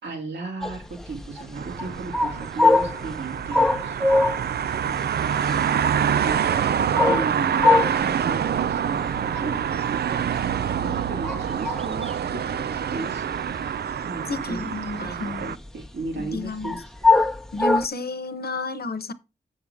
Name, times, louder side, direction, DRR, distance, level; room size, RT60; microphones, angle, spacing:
voice 1, 0.0-4.0 5.2-6.6 7.1-9.6 10.8-13.3 14.0-14.6 15.0-16.8, right 3 dB, 90° right, 2.5 m, -35 dB
sound 1, 0.6-17.9, left 3 dB, 5° left, 0.9 m, -24 dB
sound 2, 1.6-15.6, right 8 dB, 70° right, 0.4 m, -26 dB
voice 2, 14.3-15.5 16.1-16.8 17.5-19.1, left 2 dB, 65° left, 1.0 m, -31 dB
7.1 x 7.0 x 4.8 m
cardioid pair, 40°, 17 cm